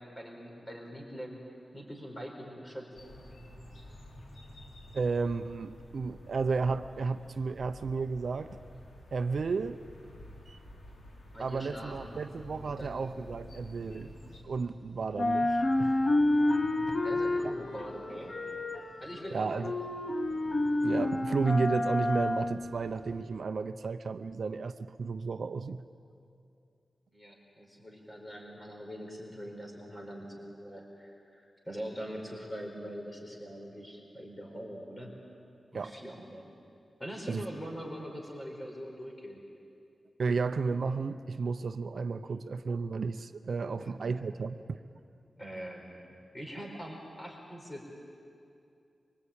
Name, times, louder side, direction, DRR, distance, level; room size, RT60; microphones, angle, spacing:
voice 1, 0.0-1.4 1.7-2.9 11.3-12.2 12.7-13.0 16.9-18.3 19.0-19.7 27.1-35.2 35.7-36.5 37.0-39.4 43.8-44.5 45.4-48.0, equal, 15° left, 1 dB, 4.4 m, -43 dB
sound 1, 2.9-14.4, left 1 dB, 70° left, 3.8 m, -51 dB
voice 2, 4.9-8.6 9.1-9.8 10.5-10.6 11.4-14.1 14.4-16.0 19.3-19.7 20.8-25.8 35.7-35.9 37.3-37.4 40.2-44.8, right 4 dB, 55° right, 10 dB, 0.6 m, -33 dB
sound 2, 11.9-14.8 15.1-23.2, left 1 dB, 40° left, 1.2 m, -30 dB
25.0 x 23.0 x 8.7 m, 2.5 s
wide cardioid pair, 165°, 0 cm